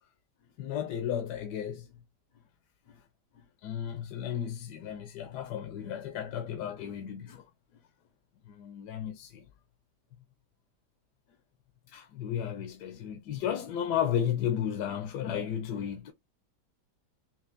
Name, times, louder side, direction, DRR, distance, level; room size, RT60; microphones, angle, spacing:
voice 1, 0.6-1.9 2.9-3.0 3.6-7.4 8.5-9.5 11.9-16.1, left 9 dB, 80° left, 1.2 m, -34 dB
5.6 x 2.4 x 2.5 m
omnidirectional pair, 1.8 m